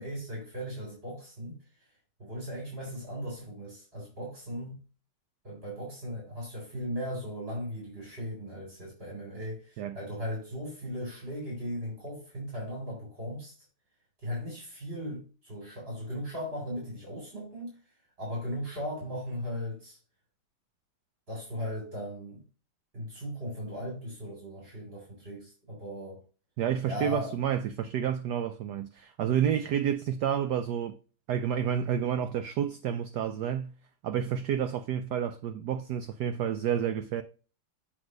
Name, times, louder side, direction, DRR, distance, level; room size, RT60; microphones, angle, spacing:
voice 1, 0.0-1.6 2.2-4.8 5.4-13.5 14.2-17.8 18.2-20.0 21.3-22.4 22.9-26.2 26.9-27.3, equal, 25° right, 3.0 m, -37 dB
voice 2, 26.6-31.0 31.3-33.7 34.0-37.2, right 9 dB, 85° right, 0.9 m, -30 dB
7.9 x 3.8 x 5.1 m
omnidirectional pair, 2.4 m